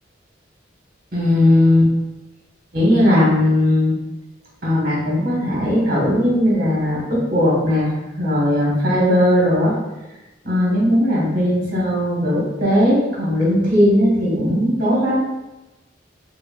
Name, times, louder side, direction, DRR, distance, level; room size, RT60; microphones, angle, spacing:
voice 1, 1.1-1.9 2.7-3.9 4.6-9.7 10.4-15.2, left 1 dB, 50° right, -4 dB, 1.2 m, -17 dB
5.4 x 2.2 x 2.2 m, 1.0 s
head